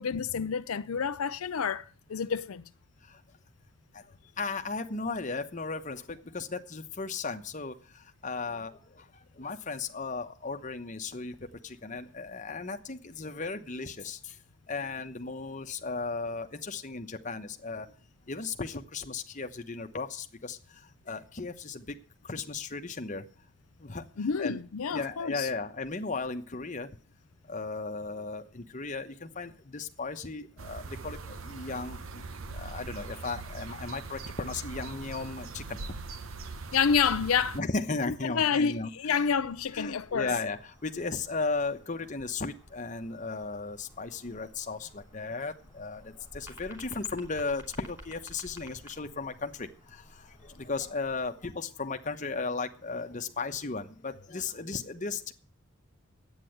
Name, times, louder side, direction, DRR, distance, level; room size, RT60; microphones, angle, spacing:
voice 1, 0.0-2.6 24.2-25.5 36.7-37.6 38.2-40.3, left 6 dB, 85° left, 0.5 m, -28 dB
voice 2, 4.4-14.4 14.7-17.9 18.3-22.0 22.2-23.2 23.8-24.6 24.9-27.0 27.5-35.8 37.5-39.2 39.7-55.3, left 4 dB, 35° left, 1.1 m, -36 dB
sound 1, 30.6-37.6, right 4 dB, 75° right, 0.9 m, -41 dB
sound 2, 39.2-51.3, equal, 10° right, 3.0 m, -54 dB
10.5 x 9.1 x 7.8 m
head